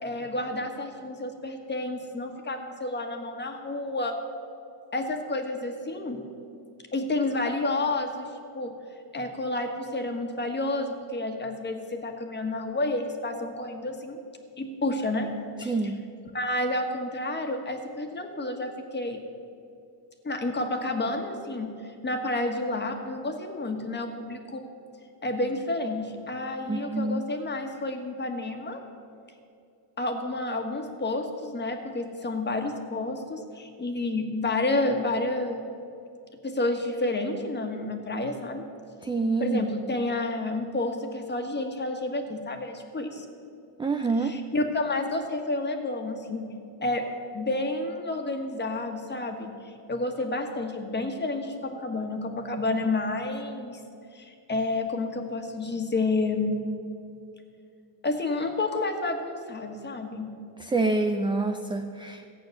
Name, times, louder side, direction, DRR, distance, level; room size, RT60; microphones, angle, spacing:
voice 1, 0.0-4.1 4.9-6.3 6.9-8.7 9.1-14.2 14.6-15.3 15.6-15.9 16.3-19.2 20.2-24.6 25.2-28.8 30.0-35.7 36.4-38.6 39.4-43.2 44.2-46.5 46.8-47.0 47.3-53.8 54.1-56.6 58.0-60.3, left 2 dB, 20° left, 4 dB, 1.4 m, -30 dB
voice 2, 15.7-16.0 26.7-27.2 39.0-39.6 43.8-44.4 60.6-62.3, right 3 dB, 10° right, 5 dB, 0.3 m, -27 dB
15.0 x 8.6 x 6.6 m, 2.5 s
cardioid pair, 130°, 50 cm